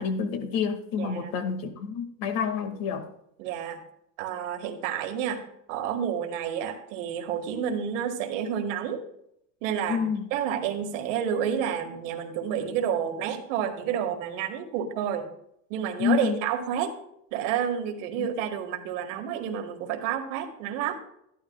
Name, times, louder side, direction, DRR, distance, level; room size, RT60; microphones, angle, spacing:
voice 1, 0.0-3.1 9.9-10.2 16.0-16.4 18.2-18.3, left 6 dB, 65° left, 6 dB, 2.0 m, -28 dB
voice 2, 1.0-1.3 3.4-3.8 4.2-9.0 9.6-15.3 15.7-16.9 17.3-20.9, right 8 dB, 80° right, 4 dB, 1.8 m, -30 dB
13.5 x 11.5 x 2.3 m, 0.75 s
supercardioid pair, 110°, 37 cm